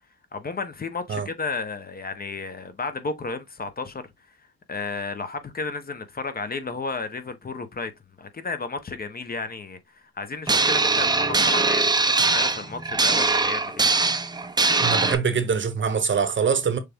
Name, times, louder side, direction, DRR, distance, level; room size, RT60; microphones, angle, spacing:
voice 1, 0.3-4.0 4.7-7.9 8.2-13.9, left 4 dB, 30° left, 0.9 m, -32 dB
sound 1, 10.5-15.2, right 3 dB, 15° right, 0.6 m, -21 dB
voice 2, 14.8-16.8, right 6 dB, 40° right, 0.9 m, -23 dB
6.6 x 2.2 x 3.5 m
cardioid pair, 90°, 30 cm